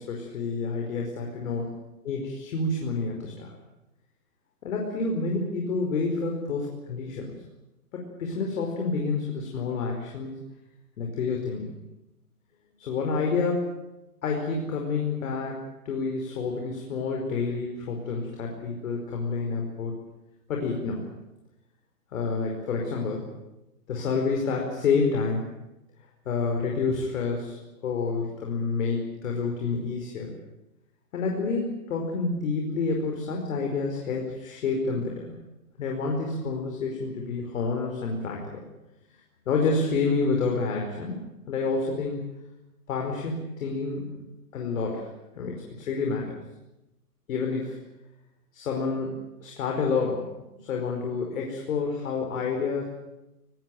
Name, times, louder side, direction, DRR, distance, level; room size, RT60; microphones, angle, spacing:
voice 1, 0.0-1.7 2.0-3.5 4.6-7.3 7.9-10.3 11.0-11.7 12.8-13.7 14.2-15.6 15.8-19.9 20.5-21.1 22.1-23.3 23.9-25.5 26.2-30.3 31.1-35.3 35.8-38.6 39.4-42.2 42.9-44.0 44.5-45.1 45.3-46.4 47.3-47.8 48.5-49.2 49.4-50.2 50.6-52.8, left 4 dB, 60° left, 1 dB, 5.1 m, -28 dB
21.5 x 18.5 x 9.2 m, 0.94 s
hypercardioid pair, 140°, 47 cm